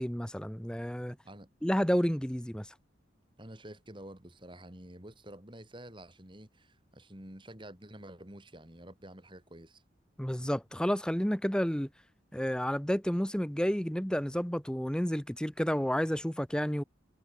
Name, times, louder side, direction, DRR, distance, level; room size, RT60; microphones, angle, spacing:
voice 1, 0.0-1.2 1.6-2.7 10.2-11.9 12.3-16.8, equal, 5° left, 1.0 m, -30 dB
voice 2, 3.4-9.8, right 1 dB, 25° right, 3.8 m, -49 dB
head